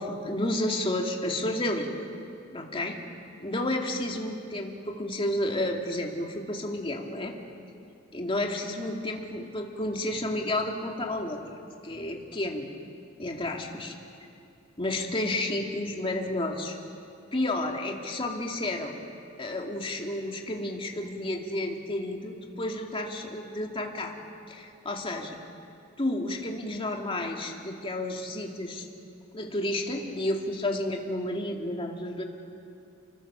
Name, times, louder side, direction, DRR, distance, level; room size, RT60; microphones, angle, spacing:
voice 1, 0.0-1.9 2.5-3.0 3.4-7.3 8.1-11.4 11.8-12.7 13.2-13.9 14.8-16.8 17.3-19.0 19.4-24.1 24.5-25.4 26.0-28.9 29.3-32.2, left 1 dB, 30° left, 1 dB, 2.6 m, -31 dB
29.0 x 24.0 x 6.9 m, 2.6 s
head